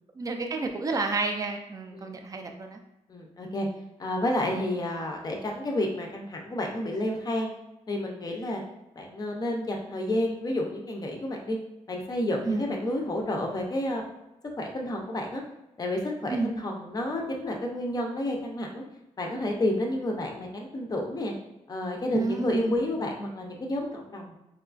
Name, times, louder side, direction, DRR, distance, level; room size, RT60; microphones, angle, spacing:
voice 1, 0.2-2.8 12.4-12.7 16.3-16.5 22.1-22.8, right 3 dB, 30° right, 4 dB, 0.4 m, -30 dB
voice 2, 3.1-3.7 4.0-7.5 7.9-8.6 9.0-11.6 11.9-14.0 14.6-15.4 15.8-18.8 19.2-21.3 21.7-24.3, left 1 dB, 30° left, 1 dB, 0.5 m, -30 dB
4.7 x 2.3 x 2.4 m, 0.92 s
wide cardioid pair, 170°, 13 cm